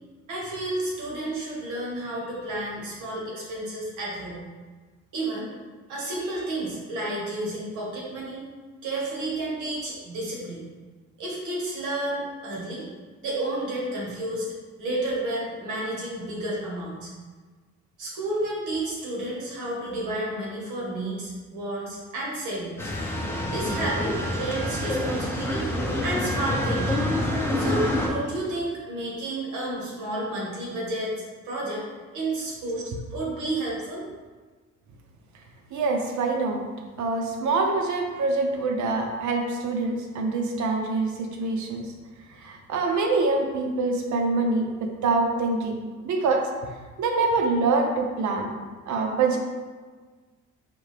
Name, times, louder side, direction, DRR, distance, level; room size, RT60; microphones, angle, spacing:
voice 1, 0.3-4.5 5.1-5.5 5.9-8.5 8.8-10.6 11.2-12.9 13.2-14.5 14.8-17.1 18.0-22.9 23.5-25.7 26.0-27.2 27.5-31.1 31.4-31.8 32.1-32.8 33.1-34.0, right 1 dB, 90° right, -4 dB, 1.4 m, -31 dB
sound 1, 22.8-28.1, left 1 dB, 10° left, 0.8 m, -27 dB
voice 2, 35.7-36.6 37.0-41.9 42.4-45.8 46.0-46.5 47.0-48.5 48.9-49.4, right 3 dB, 70° right, 3 dB, 0.8 m, -25 dB
5.0 x 2.8 x 3.4 m, 1.4 s
cardioid pair, 90°, 30 cm